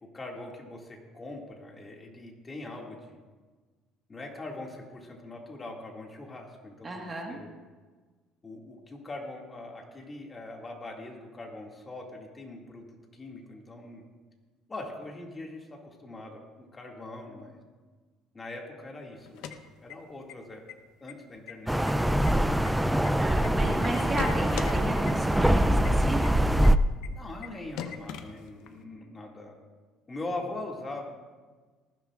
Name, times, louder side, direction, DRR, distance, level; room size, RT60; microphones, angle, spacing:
voice 1, 0.0-3.1 4.1-7.5 8.4-14.0 14.7-17.6 18.3-20.6 21.0-22.6 27.1-29.6 30.1-31.1, left 2 dB, 20° left, 0 dB, 2.2 m, -42 dB
voice 2, 6.8-7.4 23.2-26.5, right 2 dB, 20° right, 1 dB, 1.6 m, -34 dB
sound 1, 19.2-20.3 20.7-20.8 21.1-21.5 21.9-23.5 23.8-24.7 25.1-25.2 25.5-25.6 25.8-25.9 26.2-26.3 26.6-26.7 27.0-27.1 27.4-27.5 27.8-28.8, left 9 dB, 75° left, 0.9 m, -39 dB
sound 2, 21.7-26.8, right 1 dB, 5° right, 0.4 m, -23 dB
19.5 x 15.0 x 2.5 m, 1.4 s
cardioid pair, 135°, 0 cm